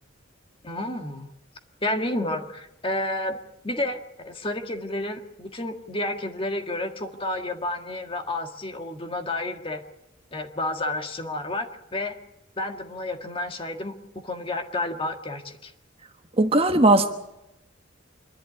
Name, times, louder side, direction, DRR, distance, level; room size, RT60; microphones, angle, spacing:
voice 1, 0.6-1.3 1.8-3.4 3.6-9.8 10.3-12.2 12.6-14.0 14.2-15.7, left 1 dB, 25° left, 5 dB, 1.7 m, -30 dB
voice 2, 16.4-17.2, right 2 dB, 30° right, 6 dB, 1.3 m, -18 dB
26.5 x 11.5 x 9.9 m, 0.90 s
head